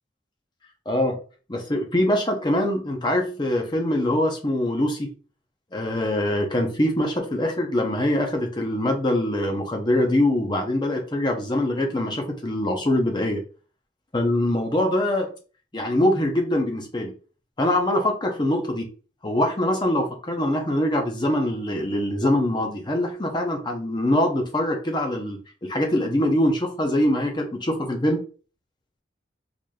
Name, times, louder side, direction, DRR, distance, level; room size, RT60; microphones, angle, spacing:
voice 1, 0.9-1.2 1.5-5.1 5.7-13.4 14.1-15.3 15.7-17.1 17.6-18.9 19.2-28.2, left 1 dB, 25° left, 3 dB, 0.6 m, -23 dB
3.8 x 3.3 x 2.3 m, 0.38 s
head